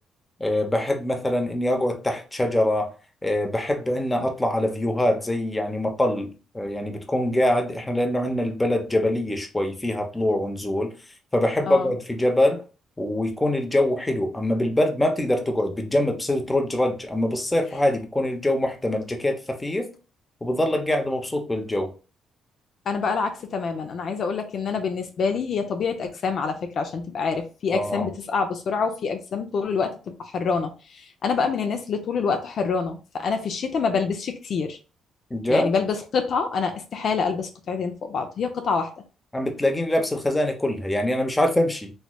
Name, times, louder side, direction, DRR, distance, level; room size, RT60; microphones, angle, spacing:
voice 1, 0.4-2.9 3.2-10.9 11.3-12.6 13.0-19.9 20.4-21.9 27.7-28.1 35.3-35.7 39.3-41.9, left 1 dB, 15° left, 0.7 m, -24 dB
voice 2, 22.9-34.8 35.5-38.9, left 5 dB, 60° left, 0.5 m, -26 dB
3.1 x 2.9 x 2.2 m
cardioid pair, 90°, 0 cm